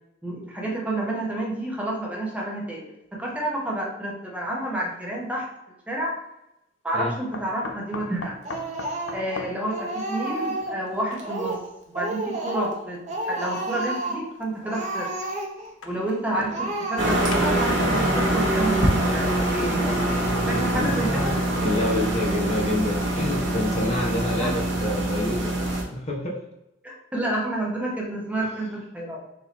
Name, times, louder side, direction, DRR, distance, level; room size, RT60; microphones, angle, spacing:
voice 1, 0.2-5.5 5.9-6.1 6.8-8.3 9.1-11.6 11.9-15.1 15.8-20.1 20.5-21.3 24.4-24.5 26.8-29.2, right 1 dB, 5° right, -3 dB, 0.9 m, -29 dB
sound 1, 4.9-5.0 7.3-11.6 12.6-12.7 13.9-14.0 15.6-17.0 17.3-17.8 19.6-21.0 21.5-21.6 22.0-22.1, left 4 dB, 65° left, 0.5 m, -41 dB
Speech, 8.4-9.4 9.7-10.8 11.2-11.7 11.9-12.8 13.1-14.3 14.6-15.7 16.1-16.2 16.5-17.5, right 2 dB, 35° right, 0.8 m, -31 dB
sound 2, 17.0-25.8, right 1 dB, 75° right, 1.0 m, -24 dB
voice 2, 20.5-20.9 21.6-26.4, left 1 dB, 35° left, -1 dB, 0.8 m, -28 dB
4.1 x 2.9 x 4.0 m, 0.87 s
head